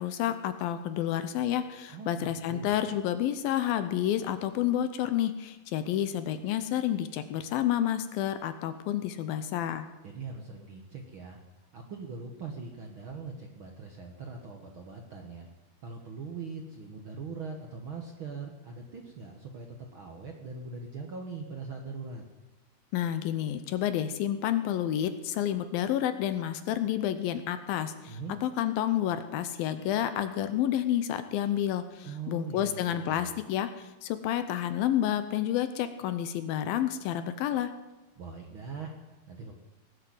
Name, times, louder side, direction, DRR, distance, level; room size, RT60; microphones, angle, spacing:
voice 1, 0.0-9.9 22.9-37.7, left 11 dB, 80° left, 10 dB, 2.4 m, -30 dB
voice 2, 1.9-2.7 10.0-11.4 11.7-15.5 15.8-22.2 28.1-28.4 32.0-33.3 38.2-39.5, right 4 dB, 80° right, 2 dB, 1.1 m, -41 dB
18.5 x 8.0 x 7.8 m, 1.1 s
omnidirectional pair, 4.5 m